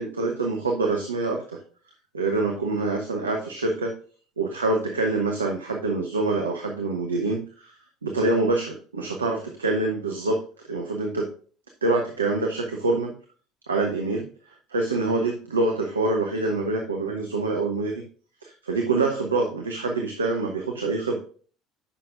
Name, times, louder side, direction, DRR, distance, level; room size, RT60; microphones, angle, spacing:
voice 1, 0.0-1.6 2.1-3.9 4.4-7.7 8.0-10.4 10.7-11.3 11.8-13.1 13.7-14.3 14.7-18.0 18.4-21.2, right 3 dB, 85° right, 2 dB, 0.8 m, -25 dB
10.0 x 5.9 x 2.5 m, 0.42 s
figure-of-eight pair, 60°, 0 cm